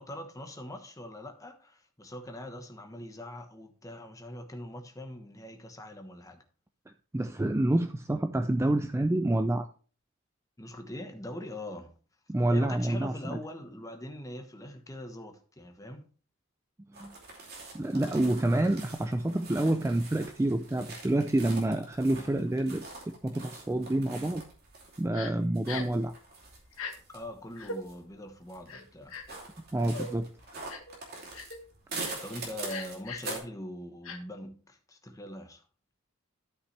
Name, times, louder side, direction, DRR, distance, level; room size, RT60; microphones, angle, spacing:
voice 1, 0.0-6.4 10.6-11.9 12.5-16.0 27.1-29.2 32.0-35.6, left 1 dB, 15° left, 1.2 m, -42 dB
voice 2, 7.1-9.7 12.3-13.4 17.0-17.1 17.7-24.4 25.0-26.1 29.7-30.3, right 1 dB, 15° right, 0.3 m, -28 dB
sound 1, 16.9-33.4, right 3 dB, 45° right, 2.8 m, -44 dB
Crying sobbing, 25.1-25.3 25.7-26.0 26.7-26.9 27.6-27.8 28.7-29.4 29.9-30.1 30.7-30.9 31.3-31.6 32.0-32.2 32.7-33.3 34.0-34.2, left 4 dB, 75° left, 1.3 m, -39 dB
13.0 x 5.7 x 3.3 m
head